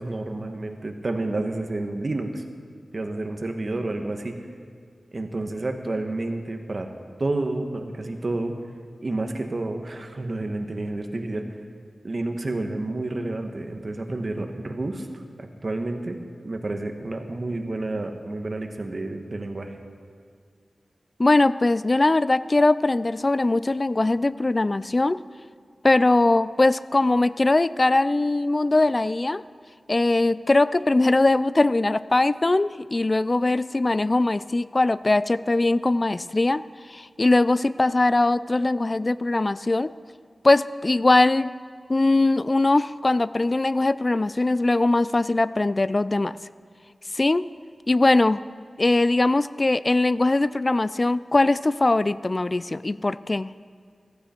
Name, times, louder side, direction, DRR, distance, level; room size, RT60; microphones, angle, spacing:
voice 1, 0.0-2.4 2.9-4.3 5.1-6.9 7.2-8.5 9.0-11.5 12.0-16.2 16.4-19.7, right 2 dB, 45° right, 5 dB, 1.3 m, -30 dB
voice 2, 21.2-25.2 25.8-29.4 29.9-39.9 40.4-41.5 41.9-46.4 47.1-47.5 47.9-48.4 48.8-53.5, left 2 dB, 35° left, 17 dB, 0.3 m, -21 dB
15.0 x 14.5 x 4.4 m, 2.1 s
wide cardioid pair, 85°, 0 cm